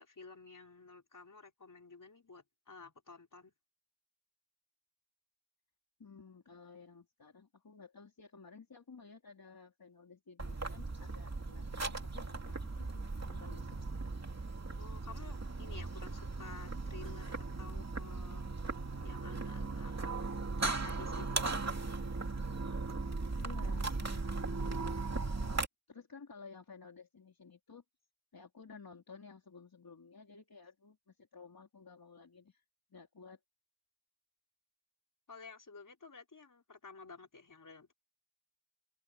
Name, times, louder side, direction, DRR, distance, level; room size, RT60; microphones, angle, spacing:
voice 1, 0.0-3.5 14.8-18.4 19.0-20.2 20.7-21.8 35.3-37.9, left 4 dB, 60° left, 5.1 m, -53 dB
voice 2, 6.0-13.9 23.4-24.8 25.0-25.5 25.9-27.8 28.3-32.6 32.9-33.4, left 5 dB, 75° left, 3.7 m, -55 dB
sound 1, 10.4-25.7, right 3 dB, 45° right, 2.8 m, -38 dB
open air
wide cardioid pair, 80°, 36 cm